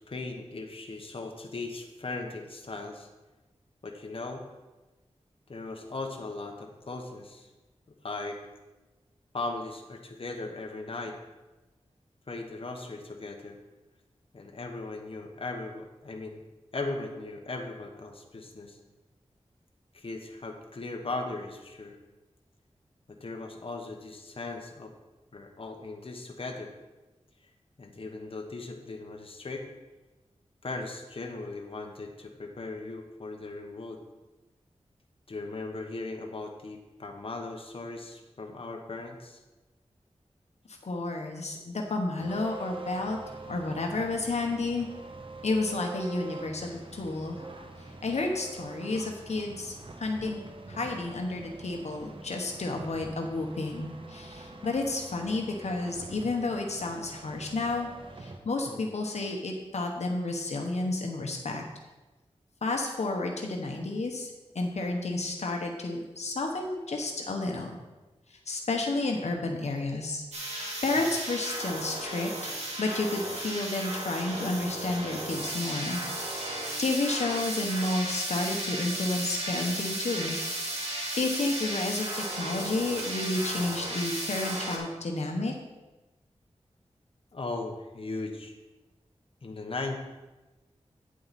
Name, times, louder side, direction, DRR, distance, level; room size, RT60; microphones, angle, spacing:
voice 1, 0.1-3.1 3.8-4.4 5.5-7.5 8.0-8.4 9.3-11.1 12.3-13.6 14.3-16.4 16.7-18.8 19.9-22.0 23.2-24.9 25.3-26.7 27.8-29.7 30.6-34.0 35.3-39.4 58.7-58.9 87.3-88.5 89.4-90.0, left 3 dB, 55° left, 2 dB, 1.1 m, -38 dB
voice 2, 40.7-43.2 43.5-44.9 45.4-47.4 48.0-50.4 50.7-57.9 58.2-61.6 62.6-67.8 68.5-80.4 81.2-85.5, left 2 dB, 75° left, 2 dB, 1.1 m, -31 dB
sound 1, 42.2-58.4, right 3 dB, 50° right, 1.0 m, -45 dB
sound 2, 70.3-84.8, right 1 dB, 70° right, 2.1 m, -34 dB
9.3 x 7.6 x 4.2 m, 1.1 s
wide cardioid pair, 70°, 11 cm